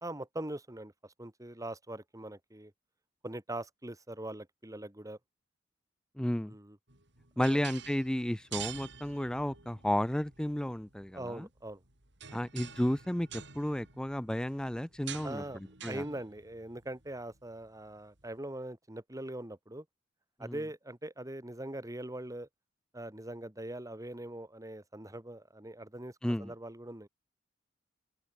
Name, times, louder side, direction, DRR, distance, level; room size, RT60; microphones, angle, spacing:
voice 1, 0.0-2.7 3.2-5.2 6.5-6.8 7.4-7.6 11.1-11.8 15.2-15.6 15.9-19.8 20.4-22.5 22.9-27.1, right 1 dB, 20° right, 2.2 m, -42 dB
voice 2, 6.2-6.5 7.4-11.5 12.3-16.0 20.4-20.6 26.2-26.5, equal, 5° left, 0.4 m, -33 dB
sound 1, 6.9-18.3, right 9 dB, 65° right, 5.5 m, -49 dB
open air
head